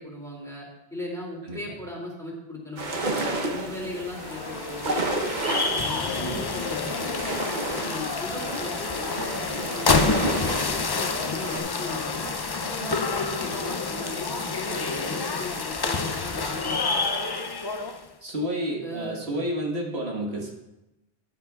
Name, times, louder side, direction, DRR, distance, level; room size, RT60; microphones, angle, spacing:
voice 1, 0.0-5.1 5.7-7.3 7.7-17.0 18.8-19.2 19.7-19.9, left 1 dB, 5° left, -3 dB, 2.5 m, -38 dB
sound 1, 2.8-11.6, right 2 dB, 50° right, 1.0 m, -31 dB
sound 2, 4.0-18.1, left 4 dB, 40° left, 0.3 m, -28 dB
voice 2, 6.1-6.4 18.2-20.5, right 1 dB, 80° right, -1 dB, 1.8 m, -30 dB
13.5 x 9.5 x 2.4 m, 0.94 s
omnidirectional pair, 1.1 m